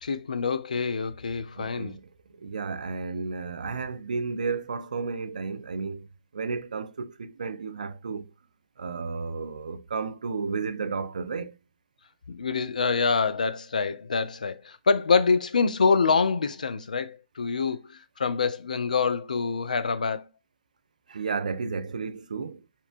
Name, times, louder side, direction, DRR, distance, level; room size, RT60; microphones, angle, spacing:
voice 1, 0.0-1.9 12.3-20.3, left 5 dB, 85° left, 0.4 m, -26 dB
voice 2, 1.6-2.1 2.4-8.3 8.8-11.6 21.1-22.7, right 4 dB, 85° right, 0.3 m, -33 dB
2.8 x 2.2 x 2.4 m
hypercardioid pair, 125°, 4 cm